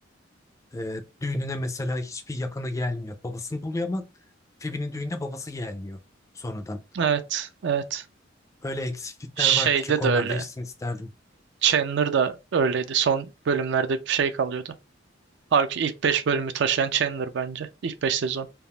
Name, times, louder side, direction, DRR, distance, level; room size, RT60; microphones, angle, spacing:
voice 1, 0.7-4.1 4.6-6.0 6.3-6.8 8.6-11.1, left 2 dB, 15° left, 0.4 m, -31 dB
voice 2, 6.9-8.0 9.4-10.4 11.6-14.7 15.5-18.5, right 7 dB, 65° right, 0.4 m, -24 dB
3.4 x 2.4 x 2.2 m
head